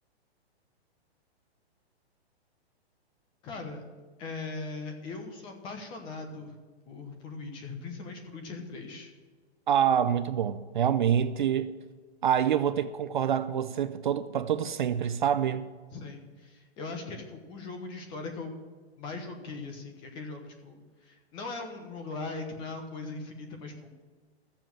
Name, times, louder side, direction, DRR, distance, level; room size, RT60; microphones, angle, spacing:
voice 1, 3.4-3.8 4.2-6.6 6.9-9.1 15.9-18.6 19.0-23.9, left 3 dB, 15° left, 1.1 m, -40 dB
voice 2, 9.7-11.7 12.2-15.7, right 9 dB, 50° right, 0.5 m, -26 dB
14.0 x 7.4 x 7.5 m
hypercardioid pair, 175°, 33 cm